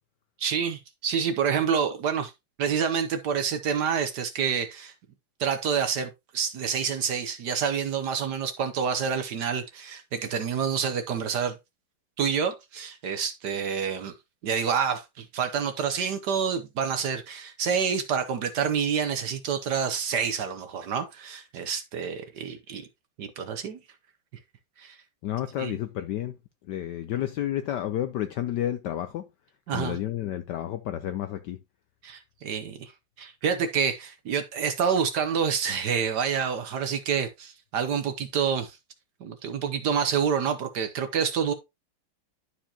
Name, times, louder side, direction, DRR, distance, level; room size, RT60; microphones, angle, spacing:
voice 1, 0.4-2.3 2.6-4.9 5.4-11.6 12.2-14.1 14.4-22.8 23.2-23.8 24.8-25.0 25.6-25.7 29.7-30.0 32.0-32.9 33.2-38.8 39.2-41.5, right 7 dB, 65° right, 1.2 m, -28 dB
voice 2, 25.2-26.4 26.7-29.3 29.7-31.6, left 12 dB, 75° left, 1.0 m, -31 dB
11.5 x 4.6 x 2.8 m
omnidirectional pair, 2.3 m